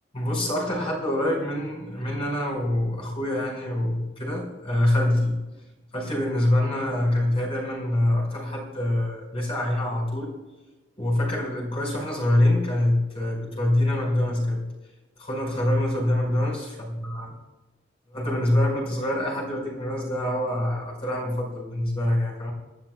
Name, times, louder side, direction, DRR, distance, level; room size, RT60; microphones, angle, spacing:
voice 1, 0.1-5.4 5.9-10.3 11.0-14.6 15.2-17.3 18.1-22.5, left 1 dB, 30° left, -3 dB, 5.2 m, -25 dB
29.0 x 11.5 x 2.4 m, 1.1 s
head